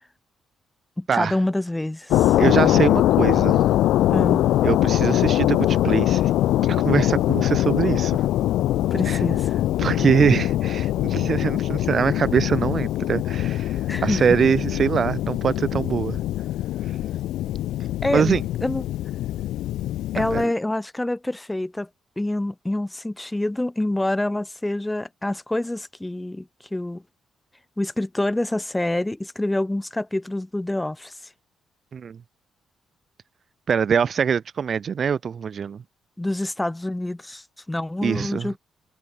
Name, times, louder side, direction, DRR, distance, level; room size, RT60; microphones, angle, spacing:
voice 1, 1.0-2.4 4.1-4.4 8.9-9.6 13.9-14.2 18.0-18.8 20.1-21.9 22.2-27.0 27.8-31.1 36.2-38.6, left 1 dB, 10° left, 5.0 m, -26 dB
sound 1, 2.1-20.4, left 14 dB, 85° left, 0.9 m, -22 dB
voice 2, 2.4-3.6 4.6-6.3 6.6-8.2 9.0-9.2 9.8-16.2 18.1-18.4 20.3-20.4 31.9-32.2 33.7-35.8 38.0-38.5, right 7 dB, 50° right, 0.8 m, -23 dB
cardioid pair, 90°, 0 cm